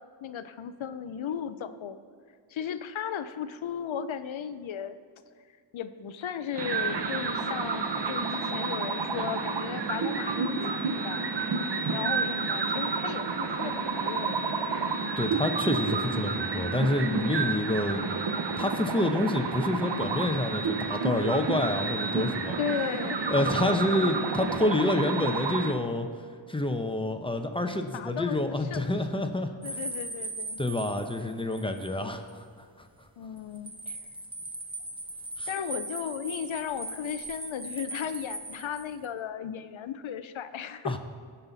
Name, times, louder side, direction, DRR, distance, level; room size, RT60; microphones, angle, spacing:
voice 1, 0.2-2.0 2.5-5.0 5.7-11.3 11.9-14.7 22.6-23.8 27.9-28.8 29.6-30.6 33.2-34.0 35.5-41.0, left 8 dB, 70° left, 12 dB, 0.7 m, -36 dB
sound 1, 6.5-25.7, right 4 dB, 55° right, 0.9 m, -30 dB
voice 2, 15.2-18.0 18.6-22.6 23.3-26.1 26.5-29.8 30.6-32.5 35.4-35.5 40.8-41.0, left 1 dB, 10° left, 6 dB, 0.9 m, -28 dB
sound 2, 29.6-32.0 32.3-32.4 33.4-39.1, right 2 dB, 10° right, 0.9 m, -39 dB
16.5 x 5.7 x 4.1 m, 2.1 s
cardioid pair, 60°, 48 cm